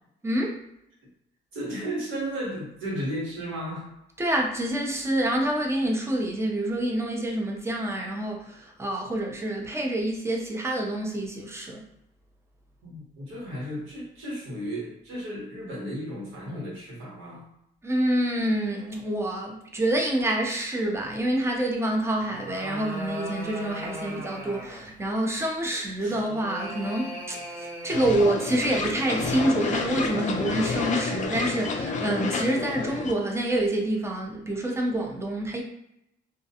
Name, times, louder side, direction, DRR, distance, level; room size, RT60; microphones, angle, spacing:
voice 1, 0.2-0.6 4.2-11.8 17.8-35.6, right 1 dB, 15° right, 0 dB, 0.6 m, -27 dB
voice 2, 1.5-3.9 12.8-17.5, equal, 80° right, -4 dB, 1.2 m, -34 dB
sound 1, 22.1-25.0 26.0-28.6, equal, 45° right, 1.2 m, -38 dB
sound 2, 27.9-33.1, left 4 dB, 40° left, 0.4 m, -29 dB
2.4 x 2.2 x 2.7 m, 0.80 s
cardioid pair, 90°, 20 cm